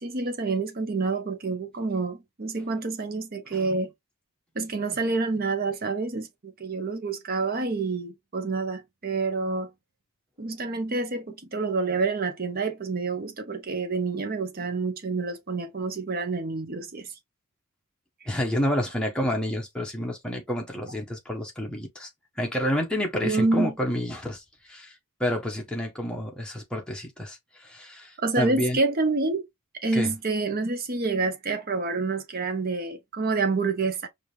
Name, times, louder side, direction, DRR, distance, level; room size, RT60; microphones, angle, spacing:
voice 1, 0.0-3.9 4.5-9.7 10.4-17.1 23.2-23.7 28.2-29.4 29.8-34.1, right 3 dB, 40° right, 0.8 m, -28 dB
voice 2, 18.3-22.1 22.4-24.9 25.2-28.8 29.9-30.1, equal, 5° left, 1.0 m, -29 dB
4.8 x 2.4 x 3.2 m
head